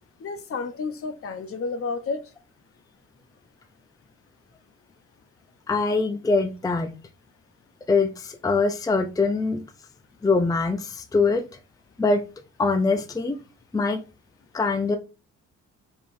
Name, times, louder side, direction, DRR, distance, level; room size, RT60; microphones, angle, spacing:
voice 1, 0.2-2.2, left 4 dB, 50° left, 10 dB, 0.8 m, -31 dB
voice 2, 5.7-6.9 7.9-9.6 10.2-11.4 12.0-12.2 12.6-13.3 13.7-14.0 14.5-15.0, left 3 dB, 10° left, 7 dB, 0.5 m, -23 dB
4.5 x 3.6 x 2.6 m, 0.31 s
cardioid pair, 90°, 30 cm